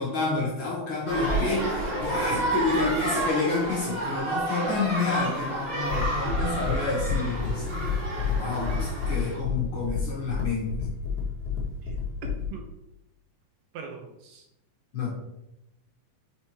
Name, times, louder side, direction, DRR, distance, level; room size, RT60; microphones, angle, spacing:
voice 1, 0.0-7.8 8.4-10.8 14.9-15.1, left 3 dB, 70° left, -4 dB, 1.2 m, -29 dB
sound 1, 1.1-9.4, right 1 dB, 20° right, 1.2 m, -30 dB
sound 2, 5.8-12.5, left 5 dB, 90° left, 0.8 m, -30 dB
voice 2, 13.7-14.4, right 5 dB, 85° right, 3 dB, 1.4 m, -41 dB
5.1 x 4.4 x 4.3 m, 0.87 s
omnidirectional pair, 3.9 m